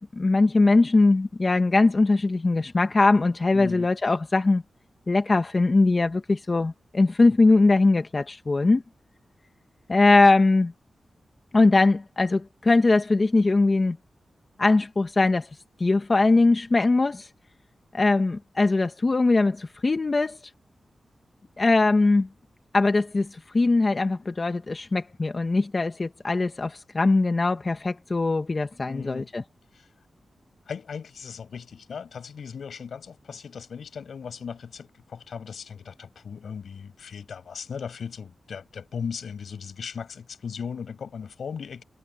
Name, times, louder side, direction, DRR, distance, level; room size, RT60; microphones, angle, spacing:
voice 1, 0.2-4.6 5.1-8.8 9.9-10.7 11.5-14.0 14.6-15.5 15.8-17.3 17.9-20.4 21.6-22.3 22.7-29.4, left 3 dB, 35° left, 1.5 m, -21 dB
voice 2, 3.5-3.9 28.9-29.3 29.7-29.9 30.7-41.8, left 6 dB, 80° left, 7.9 m, -37 dB
wide cardioid pair, 110°, 0 cm